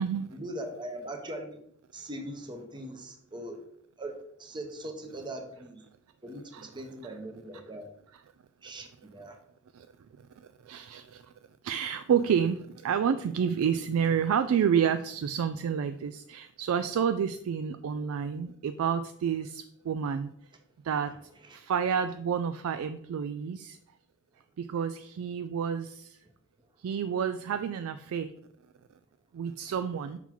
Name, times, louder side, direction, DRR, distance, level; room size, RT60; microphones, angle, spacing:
voice 1, 0.3-1.6 1.9-3.6 4.0-5.8 6.2-7.9 8.6-9.4 21.4-21.6, right 1 dB, 20° right, 5 dB, 0.7 m, -40 dB
voice 2, 10.4-11.3 11.6-20.3 20.8-21.1 21.5-23.8 24.6-26.2 26.8-28.3 29.3-30.2, right 7 dB, 70° right, 11 dB, 0.3 m, -29 dB
5.7 x 3.9 x 4.4 m, 0.69 s
head